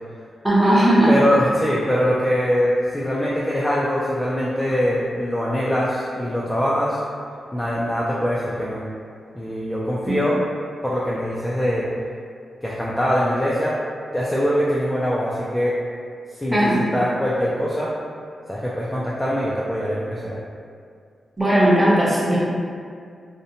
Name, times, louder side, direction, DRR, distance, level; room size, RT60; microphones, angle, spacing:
voice 1, 0.4-1.1 10.0-10.2 16.5-16.8 21.4-22.4, right 1 dB, 10° right, -8 dB, 0.8 m, -17 dB
voice 2, 1.1-7.0 7.5-8.8 9.3-10.4 10.8-11.9 12.6-13.8 14.1-15.8 16.3-17.9 18.5-20.4, equal, 10° left, -7 dB, 0.3 m, -23 dB
2.6 x 2.1 x 2.7 m, 2.2 s
cardioid pair, 95°, 0 cm